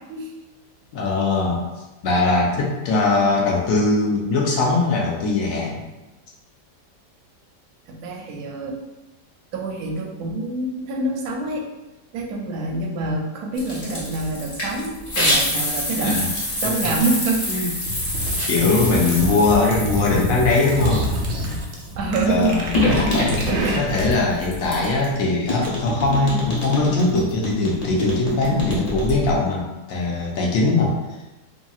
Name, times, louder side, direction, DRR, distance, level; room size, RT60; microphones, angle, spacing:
voice 1, 0.9-1.6 2.0-5.8 16.0-16.1 17.5-17.7 18.5-21.1 21.4-21.6 22.3-22.8 23.7-30.9, left 3 dB, 70° left, -2 dB, 0.9 m, -21 dB
voice 2, 7.9-8.8 9.5-11.7 12.1-16.3 16.6-17.4 22.0-22.6 23.0-23.2 25.6-25.7 30.6-30.8, right 2 dB, 70° right, 0 dB, 1.0 m, -26 dB
sound 1, 13.6-21.7 22.2-25.2 25.5-29.4, left 1 dB, 45° left, 0.5 m, -26 dB
sound 2, 17.8-24.2, right 1 dB, 90° right, 0.6 m, -27 dB
2.9 x 2.7 x 2.3 m, 1.0 s
omnidirectional pair, 1.8 m